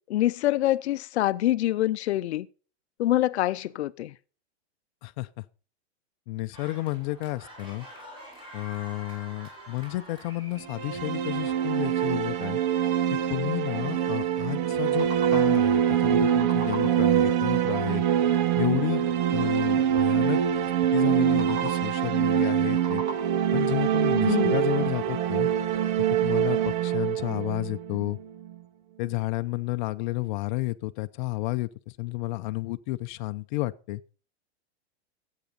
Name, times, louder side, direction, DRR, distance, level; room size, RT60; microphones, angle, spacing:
voice 1, 0.1-2.5 3.0-4.1 24.3-24.6, left 14 dB, 80° left, 0.7 m, -25 dB
voice 2, 6.3-7.9 8.5-12.6 13.1-18.0 18.5-20.4 20.9-23.0 23.5-25.5 26.2-28.2 29.0-31.7 32.0-34.0, left 19 dB, 45° left, 0.7 m, -31 dB
sound 1, 6.5-12.8, equal, 15° right, 6.3 m, -48 dB
sound 2, 10.6-28.5, right 9 dB, 45° right, 0.9 m, -24 dB
sound 3, 14.8-15.7 16.0-17.2 21.1-22.0 22.5-23.6, right 3 dB, 80° right, 4.7 m, -40 dB
14.5 x 8.4 x 5.3 m
supercardioid pair, 155°, 33 cm